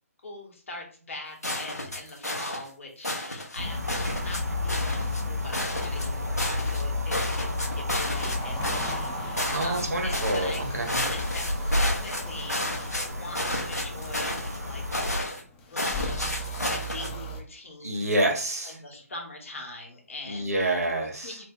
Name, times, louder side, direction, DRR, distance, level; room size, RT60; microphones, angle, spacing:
voice 1, 0.2-3.8 4.2-10.6 11.1-14.8 15.7-15.9 16.5-18.0 18.6-20.8 21.2-21.4, left 2 dB, 55° left, 1 dB, 1.1 m, -42 dB
sound 1, 1.4-2.7 3.0-3.6 3.9-4.4 4.7-5.2 5.5-6.8 7.1-8.4 8.6-9.1 9.4-9.9 10.1-10.6 10.9-13.1 13.3-14.6 14.9-15.4 15.8-17.1, left 1 dB, 90° left, 0.9 m, -32 dB
sound 2, 3.6-15.2, left 2 dB, 90° right, 0.8 m, -31 dB
sound 3, 8.0-17.4, equal, 15° left, 0.4 m, -40 dB
voice 2, 9.5-11.0 17.8-18.8 20.3-21.4, right 1 dB, 75° right, 2 dB, 1.1 m, -27 dB
3.2 x 2.1 x 3.6 m, 0.44 s
figure-of-eight pair, 140°, 8 cm